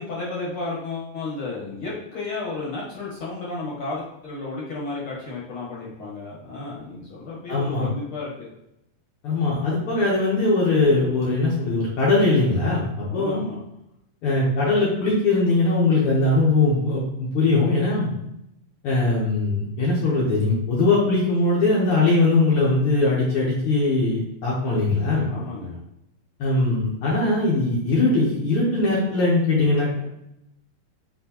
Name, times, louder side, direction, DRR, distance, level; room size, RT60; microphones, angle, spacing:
voice 1, 0.0-8.5 13.0-13.6 25.3-25.8, left 3 dB, 60° left, -5 dB, 1.5 m, -33 dB
voice 2, 7.5-7.9 9.2-13.4 14.2-18.1 18.8-25.3 26.4-30.0, left 2 dB, 85° left, -5 dB, 1.2 m, -21 dB
4.3 x 4.2 x 2.9 m, 0.84 s
omnidirectional pair, 3.8 m